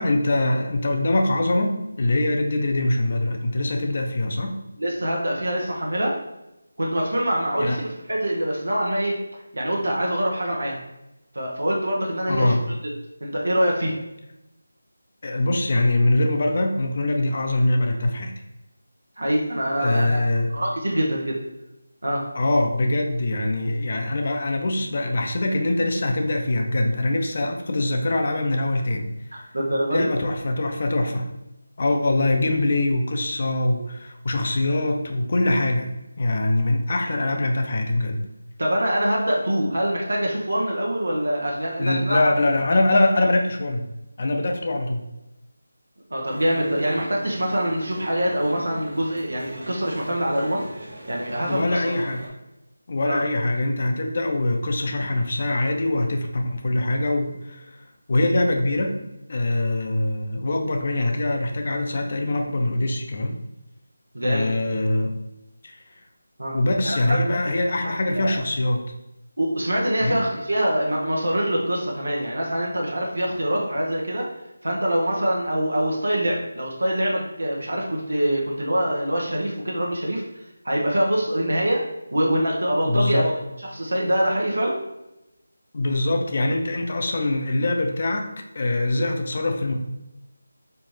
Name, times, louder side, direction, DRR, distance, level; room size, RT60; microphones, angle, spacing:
voice 1, 0.0-4.5 7.6-7.9 12.3-12.6 15.2-18.3 19.8-20.5 22.3-29.1 29.9-31.3 31.8-38.2 41.8-43.8 44.2-45.0 51.5-52.3 52.9-57.8 58.1-58.9 59.3-63.4 64.2-65.1 65.6-65.8 66.5-68.9 70.0-70.2 82.8-83.4 85.7-89.7, left 2 dB, 45° left, 4 dB, 0.5 m, -23 dB
voice 2, 4.8-6.2 6.8-9.2 9.5-10.8 11.3-12.6 13.2-14.0 19.2-21.4 22.0-22.3 29.3-30.1 38.6-42.2 46.1-50.6 51.1-51.9 53.1-53.2 64.1-64.5 66.4-66.6 66.8-67.2 67.8-67.9 68.2-68.4 69.4-74.3 74.6-80.2 80.6-81.8 82.1-83.3 83.7-84.8, equal, 90° right, -2 dB, 0.8 m, -24 dB
sound 1, 46.2-52.3, right 1 dB, 55° right, 1.2 m, -40 dB
4.4 x 2.8 x 3.1 m, 0.93 s
figure-of-eight pair, 165°, 0 cm